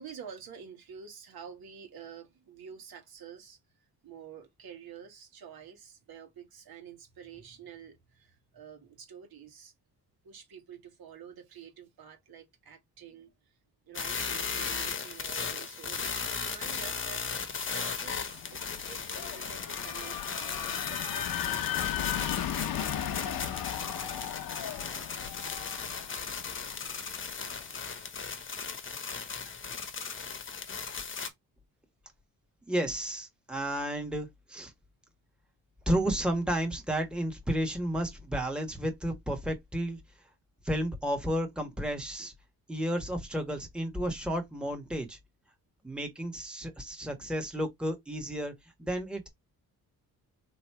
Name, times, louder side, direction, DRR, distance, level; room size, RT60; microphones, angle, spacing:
voice 1, 0.0-3.6 4.0-9.7 10.2-13.3 13.9-22.8, right 7 dB, 70° right, 1.6 m, -49 dB
sound 1, 13.9-31.3, left 5 dB, 35° left, 1.0 m, -36 dB
sound 2, 17.9-27.7, left 11 dB, 60° left, 0.8 m, -36 dB
voice 2, 32.6-34.7 35.9-40.0 40.6-42.3 42.7-45.2 45.8-48.5 48.8-49.3, right 1 dB, ahead, 1.3 m, -32 dB
3.8 x 3.0 x 4.6 m
cardioid pair, 100°, 38 cm